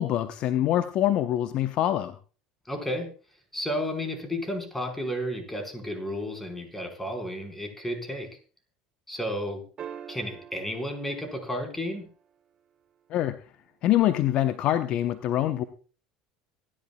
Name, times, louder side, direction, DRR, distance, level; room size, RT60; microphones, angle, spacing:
voice 1, 0.0-2.1 13.1-13.4 13.8-15.6, left 12 dB, 45° left, 12 dB, 0.8 m, -24 dB
voice 2, 2.7-3.1 3.5-8.3 9.1-9.6 10.1-12.1, equal, 10° left, 4 dB, 4.8 m, -32 dB
sound 1, 9.8-12.3 14.5-14.6, right 9 dB, 35° right, 1.4 m, -44 dB
25.5 x 11.0 x 2.3 m, 0.37 s
figure-of-eight pair, 70°, 2 cm